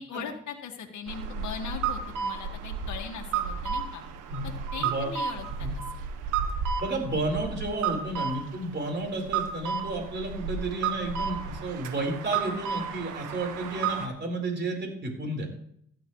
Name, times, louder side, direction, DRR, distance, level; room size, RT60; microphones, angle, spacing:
voice 1, 0.0-4.0 4.7-6.0, left 7 dB, 70° left, 3 dB, 1.9 m, -39 dB
sound 1, 1.1-14.1, right 6 dB, 90° right, 1.5 m, -32 dB
voice 2, 4.3-5.1 5.6-5.7 6.8-15.5, right 2 dB, 35° right, 2 dB, 4.3 m, -32 dB
15.0 x 11.5 x 3.1 m, 0.70 s
cardioid pair, 90°, 30 cm